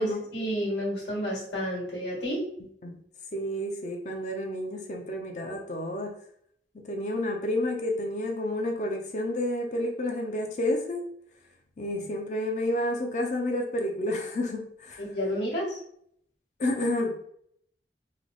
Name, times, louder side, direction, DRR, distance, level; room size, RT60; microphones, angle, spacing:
voice 1, 0.0-2.4 15.0-15.8, equal, 90° left, -4 dB, 1.5 m, -30 dB
voice 2, 3.3-6.1 6.7-11.0 11.8-15.0 16.6-17.2, left 1 dB, 40° left, 3 dB, 0.5 m, -30 dB
3.1 x 2.0 x 3.9 m, 0.69 s
head